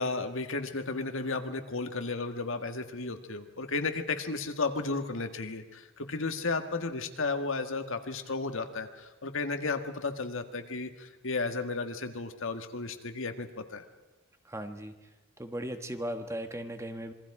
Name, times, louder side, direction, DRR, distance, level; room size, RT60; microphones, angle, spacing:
voice 1, 0.0-13.8, left 3 dB, 65° left, 7 dB, 1.7 m, -33 dB
voice 2, 14.4-14.9 15.4-17.1, right 1 dB, 15° right, 7 dB, 1.3 m, -37 dB
27.0 x 23.0 x 4.9 m, 1.1 s
head